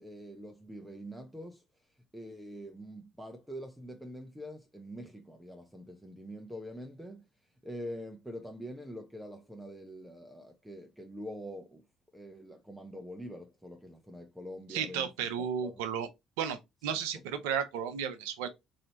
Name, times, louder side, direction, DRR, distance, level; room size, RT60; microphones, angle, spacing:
voice 1, 0.0-1.6 2.1-7.2 7.6-11.8 12.1-15.1 15.4-15.8 17.1-17.2, equal, 5° right, 0.8 m, -45 dB
voice 2, 14.7-16.1 16.4-18.5, right 8 dB, 75° right, 0.7 m, -33 dB
4.2 x 2.8 x 2.7 m
hypercardioid pair, 55°, 0 cm